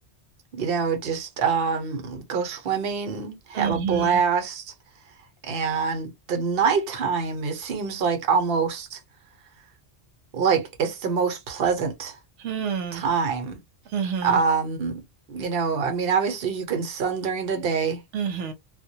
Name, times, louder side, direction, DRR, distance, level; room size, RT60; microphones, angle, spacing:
voice 1, 0.5-4.7 5.4-9.0 10.3-12.2 12.9-13.6 14.2-15.0 15.3-18.0, right 6 dB, 60° right, 0.9 m, -25 dB
voice 2, 3.5-4.1 12.4-13.0 13.9-14.4 18.1-18.5, right 7 dB, 90° right, 0.9 m, -28 dB
2.2 x 2.1 x 2.7 m
omnidirectional pair, 1.2 m